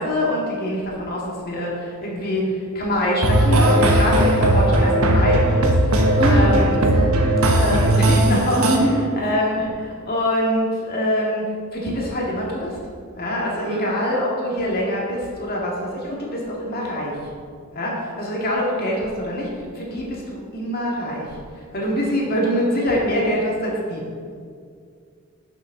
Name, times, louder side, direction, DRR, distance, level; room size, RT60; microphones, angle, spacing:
voice 1, 0.0-6.7 7.5-8.6 9.1-11.5 11.7-12.8 13.2-17.2 17.7-21.4 21.7-24.0, equal, 45° left, -3 dB, 2.1 m, -24 dB
sound 1, 3.2-8.8, right 1 dB, 70° right, 1.2 m, -17 dB
voice 2, 6.2-7.2 8.5-9.1 13.6-13.9, right 1 dB, 25° right, -3 dB, 1.4 m, -23 dB
11.5 x 6.7 x 3.8 m, 2.3 s
head